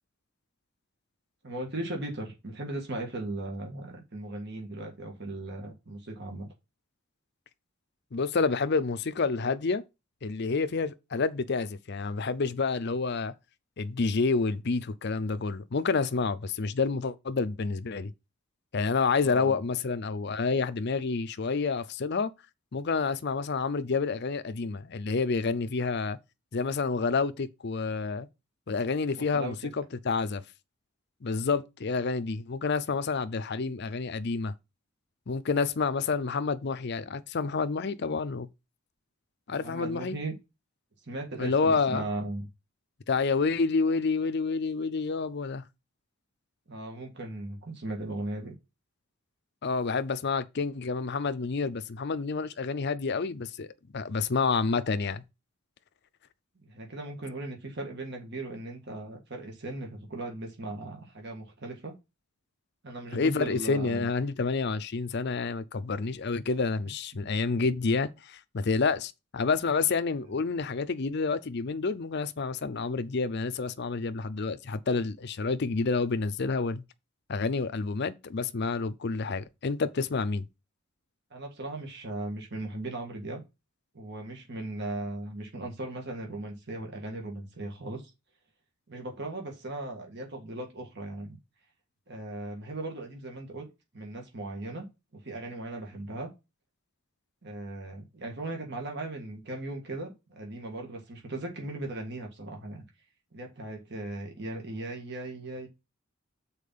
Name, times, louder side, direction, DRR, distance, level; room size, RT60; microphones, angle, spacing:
voice 1, 1.4-6.5 19.2-19.6 29.1-29.6 39.5-40.3 41.1-42.4 46.7-48.5 56.7-61.9 62.8-64.1 67.3-67.4 81.3-83.4 83.9-88.0 88.9-91.4 92.1-93.7 93.9-94.9 95.1-96.3 97.4-102.8 103.3-105.7, right 2 dB, 55° right, 1.8 m, -38 dB
voice 2, 8.1-9.8 10.2-13.3 13.8-18.1 18.7-22.3 22.7-26.2 26.5-28.3 28.7-30.4 31.2-34.5 35.3-38.5 39.5-40.2 41.4-42.0 43.1-45.6 49.6-53.7 53.9-55.2 63.1-76.8 77.3-80.4, left 4 dB, 50° left, 0.5 m, -29 dB
6.7 x 4.4 x 5.4 m
head